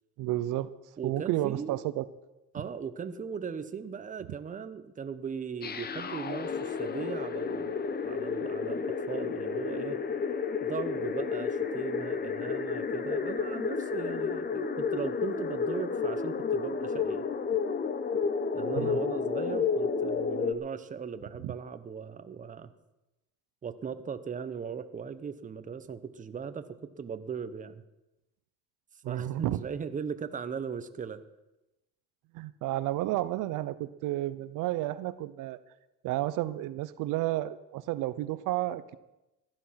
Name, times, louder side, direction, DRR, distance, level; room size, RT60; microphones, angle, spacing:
voice 1, 0.2-0.7 1.0-2.1 18.8-19.0 21.4-21.5 29.0-29.6 32.3-35.6 36.0-39.0, right 15 dB, 65° right, 14 dB, 0.8 m, -31 dB
voice 2, 1.0-1.8 2.5-7.8 8.0-10.0 10.6-17.3 18.5-22.7 23.6-27.8 29.1-31.2, right 6 dB, 25° right, 11 dB, 0.9 m, -38 dB
sound 1, 5.6-20.5, left 5 dB, 30° left, 1.0 m, -31 dB
16.0 x 11.0 x 5.8 m, 0.97 s
cardioid pair, 115°, 34 cm